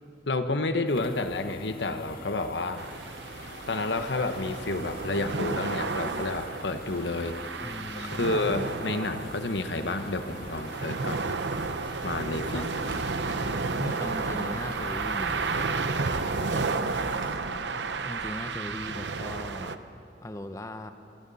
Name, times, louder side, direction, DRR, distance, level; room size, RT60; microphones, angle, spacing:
voice 1, 0.3-2.8 3.7-7.4 7.9-11.2 12.0-12.7, left 2 dB, 85° left, 8 dB, 1.2 m, -30 dB
sound 1, 0.8-17.4, left 3 dB, 55° left, 2.2 m, -47 dB
sound 2, 2.8-19.8, right 4 dB, 85° right, 0.9 m, -32 dB
voice 2, 7.6-8.7 12.5-12.7 13.8-15.4 18.0-19.7 20.2-20.9, left 1 dB, 20° left, 8 dB, 0.8 m, -38 dB
sound 3, 11.5-17.5, right 1 dB, 60° right, 3.9 m, -44 dB
26.5 x 23.5 x 4.2 m, 2.9 s
head